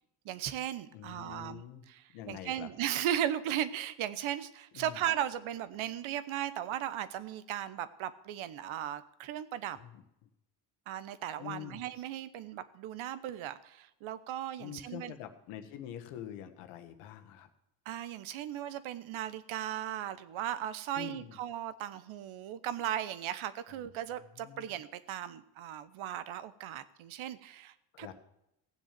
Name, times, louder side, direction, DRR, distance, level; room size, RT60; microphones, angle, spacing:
voice 1, 0.2-9.8 10.9-15.1 17.8-28.1, right 11 dB, 70° right, 14 dB, 1.1 m, -37 dB
voice 2, 0.9-1.8 2.1-2.7 4.7-5.0 9.7-10.3 11.4-11.8 14.6-17.5 20.9-21.4 24.3-24.7 27.9-28.1, left 11 dB, 85° left, 7 dB, 1.5 m, -45 dB
16.0 x 7.5 x 7.5 m, 0.83 s
supercardioid pair, 65°, 50 cm